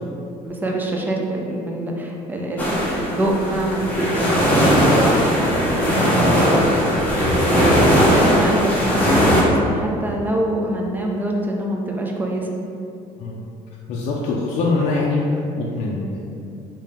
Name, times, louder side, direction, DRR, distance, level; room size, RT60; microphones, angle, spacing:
voice 1, 0.4-12.5, right 1 dB, 10° right, -1 dB, 0.5 m, -25 dB
sound 1, 2.6-9.4, equal, 10° left, 1.0 m, -18 dB
voice 2, 13.9-16.2, left 3 dB, 55° left, -4 dB, 0.5 m, -23 dB
5.2 x 2.8 x 3.5 m, 2.6 s
cardioid pair, 145°, 14 cm